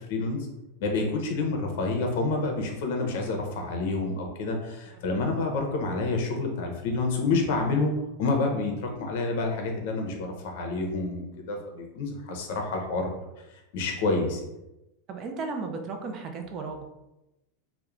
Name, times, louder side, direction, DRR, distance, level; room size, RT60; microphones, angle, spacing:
voice 1, 0.1-0.4 0.8-7.9 8.2-13.1 13.7-14.4, left 3 dB, 60° left, 2 dB, 0.6 m, -28 dB
voice 2, 15.1-16.9, right 4 dB, 30° right, 4 dB, 0.3 m, -34 dB
3.0 x 2.1 x 2.4 m, 0.95 s
supercardioid pair, 155°, 0 cm